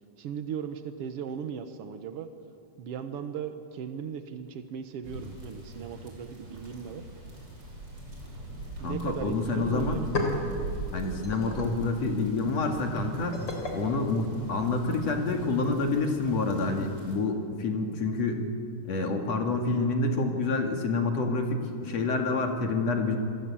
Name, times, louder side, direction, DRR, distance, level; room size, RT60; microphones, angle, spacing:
voice 1, 0.2-2.3 2.8-7.0 8.8-10.2, right 7 dB, 90° right, 8 dB, 1.2 m, -37 dB
sound 1, 5.0-17.1, right 2 dB, 25° right, 6.4 m, -42 dB
voice 2, 8.8-10.0 10.9-13.4 13.7-18.4 18.9-23.2, left 3 dB, 50° left, 3 dB, 3.0 m, -28 dB
sound 2, 9.9-15.0, left 2 dB, 30° left, 4.1 m, -37 dB
27.0 x 21.0 x 8.6 m, 2.6 s
omnidirectional pair, 4.2 m